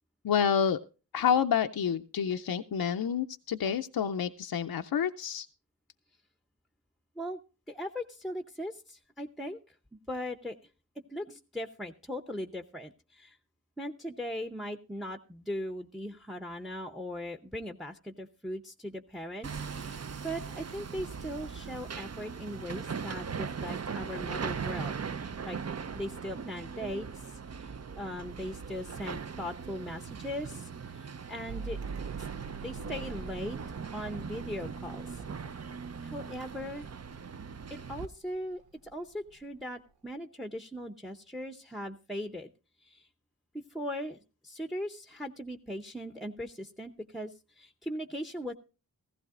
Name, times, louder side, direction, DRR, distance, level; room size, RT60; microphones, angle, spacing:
voice 1, 0.2-0.8 1.1-5.5, left 7 dB, 75° left, 7 dB, 0.5 m, -28 dB
voice 2, 7.7-9.7 10.1-10.6 11.1-13.4 13.8-25.6 25.9-27.4 27.9-31.8 32.6-33.6 33.9-35.2 36.0-36.9 37.7-42.5 42.8-43.1 43.5-48.5, equal, ahead, 8 dB, 0.7 m, -39 dB
Hammer, 19.4-38.1, right 6 dB, 45° right, 0.5 m, -40 dB
Mechanical fan, 31.5-38.4 38.6-39.4, right 5 dB, 85° right, 0.7 m, -45 dB
15.0 x 15.0 x 2.4 m, 0.32 s
wide cardioid pair, 50°, 36 cm